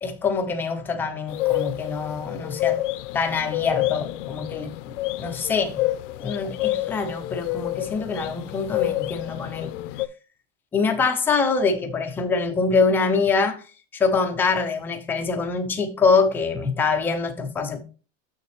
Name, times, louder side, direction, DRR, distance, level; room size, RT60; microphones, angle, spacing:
voice 1, 0.0-2.8 3.1-4.9 5.2-5.8 6.2-9.7 10.7-13.6 13.9-17.8, left 4 dB, 5° left, 0.3 m, -24 dB
sound 1, 1.3-10.1, left 16 dB, 80° left, 0.6 m, -28 dB
6.6 x 6.4 x 3.2 m
supercardioid pair, 160°, 36 cm